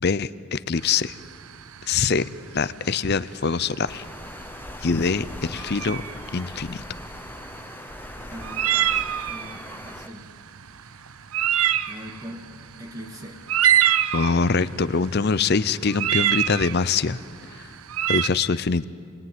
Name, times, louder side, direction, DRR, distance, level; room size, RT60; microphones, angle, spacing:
voice 1, 0.0-1.1 1.9-2.3 2.5-4.0 4.8-6.0 6.3-6.8 14.1-17.2 18.1-18.8, left 5 dB, 50° left, 15 dB, 0.6 m, -23 dB
sound 1, 0.8-18.3, right 11 dB, 80° right, 0.7 m, -26 dB
Water, 3.9-10.1, left 1 dB, 10° left, 0.7 m, -40 dB
voice 2, 8.1-10.3 11.9-12.5 12.8-13.4, equal, 15° right, 1 dB, 2.6 m, -41 dB
28.5 x 20.5 x 9.5 m, 2.2 s
head